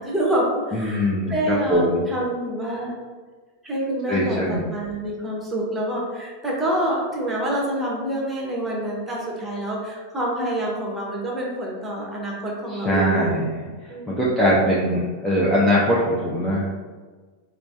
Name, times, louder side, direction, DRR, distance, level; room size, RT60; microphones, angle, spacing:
voice 1, 0.0-2.9 3.6-13.4 13.9-14.1, right 1 dB, 10° right, -3 dB, 0.9 m, -27 dB
voice 2, 0.7-2.0 4.1-4.6 12.8-13.5 13.8-16.6, equal, 5° left, -8 dB, 0.6 m, -21 dB
4.4 x 2.1 x 2.6 m, 1.4 s
figure-of-eight pair, 90°, 0 cm